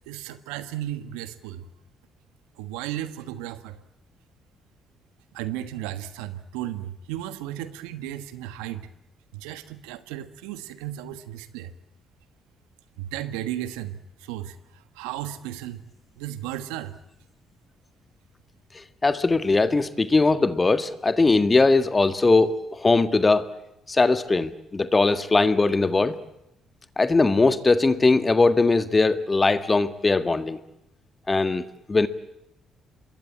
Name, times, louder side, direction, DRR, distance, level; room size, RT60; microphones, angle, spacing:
voice 1, 0.1-1.6 2.6-3.8 5.3-8.9 9.3-11.7 13.0-14.6 15.0-15.8 16.2-16.9, right 12 dB, 85° right, 11 dB, 1.4 m, -34 dB
voice 2, 18.7-23.5 23.9-26.2 27.0-30.6 31.3-32.1, left 3 dB, 30° left, 10 dB, 1.7 m, -20 dB
27.0 x 21.5 x 8.8 m, 0.86 s
hypercardioid pair, 50°, 0 cm